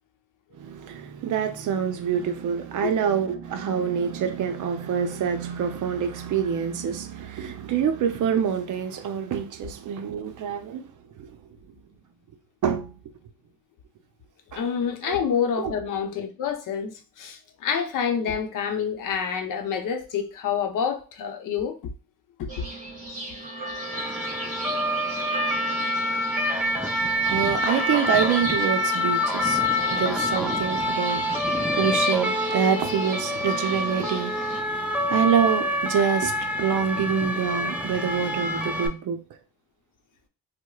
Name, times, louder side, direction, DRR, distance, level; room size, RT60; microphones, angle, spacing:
voice 1, 0.6-10.9 11.2-11.4 12.6-12.9 14.5-14.6 15.0-15.2 15.6-15.7 27.2-29.6 29.9-34.4 34.7-39.2, right 7 dB, 55° right, 0.6 m, -26 dB
voice 2, 14.5-21.8 22.4-22.7, left 7 dB, 60° left, 0.7 m, -27 dB
sound 1, 22.5-34.6, right 1 dB, 20° right, 1.7 m, -34 dB
sound 2, 23.8-38.9, left 1 dB, 5° right, 0.4 m, -26 dB
4.6 x 2.1 x 2.3 m
cardioid pair, 125°, 36 cm